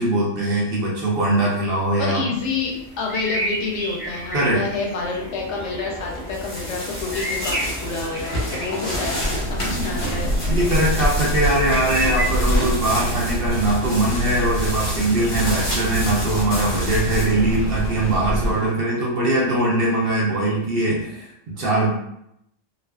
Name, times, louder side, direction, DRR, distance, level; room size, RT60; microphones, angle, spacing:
voice 1, 0.0-2.3 4.3-4.6 10.4-21.9, right 1 dB, 55° right, -4 dB, 0.7 m, -21 dB
voice 2, 2.0-10.6 14.8-15.1 17.0-17.3, left 4 dB, 70° left, -2 dB, 0.8 m, -29 dB
sound 1, 2.3-13.2, right 1 dB, 5° right, 0.8 m, -32 dB
sound 2, 6.1-18.6, equal, 35° left, 0.6 m, -31 dB
sound 3, 9.2-18.6, right 1 dB, 85° right, 1.1 m, -25 dB
2.4 x 2.4 x 2.2 m, 0.77 s
omnidirectional pair, 1.3 m